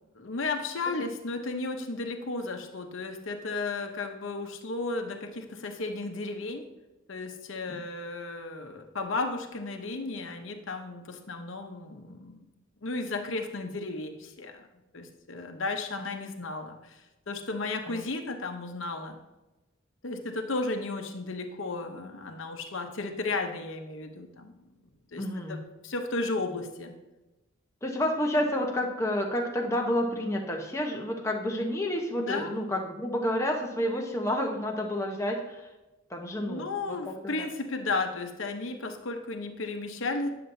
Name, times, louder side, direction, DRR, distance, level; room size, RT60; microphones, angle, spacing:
voice 1, 0.1-6.7 7.1-12.5 12.8-14.7 14.9-19.2 20.0-24.6 25.1-26.9 32.2-32.6 36.4-40.3, left 3 dB, 60° left, 5 dB, 0.8 m, -34 dB
voice 2, 25.2-25.6 27.8-35.6 36.1-37.5, left 1 dB, 15° left, 1 dB, 0.8 m, -30 dB
9.5 x 6.7 x 2.7 m, 1.0 s
head